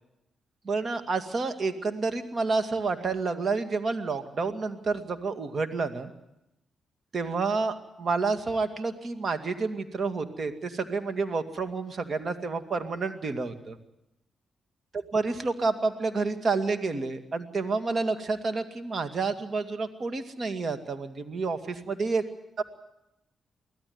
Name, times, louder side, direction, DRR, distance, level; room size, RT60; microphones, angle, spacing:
voice 1, 0.6-6.1 7.1-13.8 15.1-22.2 22.6-22.7, right 4 dB, 55° right, 8 dB, 2.3 m, -29 dB
24.5 x 16.0 x 9.6 m, 0.90 s
hypercardioid pair, 45°, 0 cm